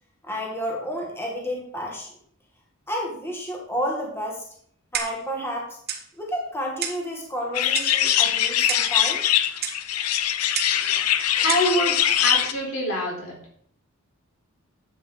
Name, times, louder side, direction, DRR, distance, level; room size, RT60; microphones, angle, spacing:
voice 1, 0.2-2.1 2.9-4.4 4.9-5.8 6.2-9.2, equal, 10° left, -2 dB, 2.1 m, -30 dB
Clock, 4.9-5.3 5.9-6.1 6.8-7.1 7.7-8.0 8.7-9.0 9.6-9.8 10.5-10.8 11.5-11.7, right 7 dB, 50° right, 1.4 m, -30 dB
sound 1, 7.5-12.5, left 11 dB, 90° left, 0.7 m, -22 dB
voice 2, 11.4-13.3, equal, 65° left, -1 dB, 4.2 m, -25 dB
11.5 x 8.4 x 3.9 m, 0.62 s
head